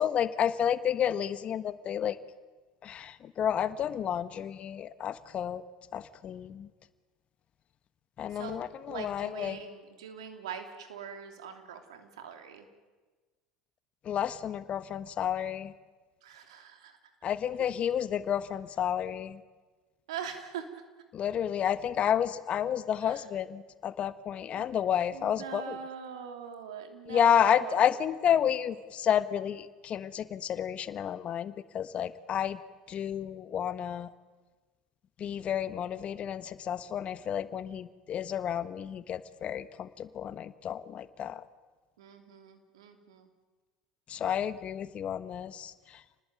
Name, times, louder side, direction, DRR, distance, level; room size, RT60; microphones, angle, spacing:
voice 1, 0.0-2.2 2.8-5.6 5.9-6.7 8.2-9.6 14.0-15.7 17.2-19.4 21.1-25.7 27.1-32.6 32.9-34.1 35.2-41.4 44.1-45.7, left 9 dB, 45° left, 12 dB, 1.4 m, -30 dB
voice 2, 8.3-12.7 16.2-17.0 20.1-20.8 23.0-23.2 24.6-24.8 25.1-27.9 42.0-43.3, right 7 dB, 85° right, 6 dB, 3.0 m, -42 dB
28.5 x 20.0 x 9.0 m, 1.3 s
hypercardioid pair, 80°, 3 cm